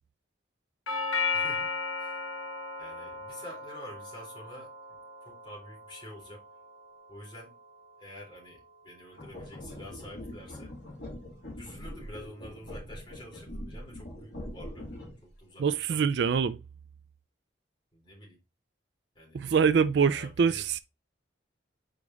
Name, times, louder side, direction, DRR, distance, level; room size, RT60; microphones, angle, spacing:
Doorbell, 0.9-8.9, left 4 dB, 90° left, 0.9 m, -36 dB
voice 1, 1.3-2.2 2.8-6.5 7.1-7.5 8.0-10.7 11.6-14.9 15.2-16.1 17.9-18.4 19.1-19.4 20.0-20.7, left 1 dB, 25° left, 3.6 m, -48 dB
sound 1, 9.1-15.3, left 1 dB, 55° left, 2.9 m, -43 dB
voice 2, 15.6-16.6 19.3-20.8, right 6 dB, 60° right, 0.4 m, -24 dB
5.1 x 4.8 x 3.9 m
head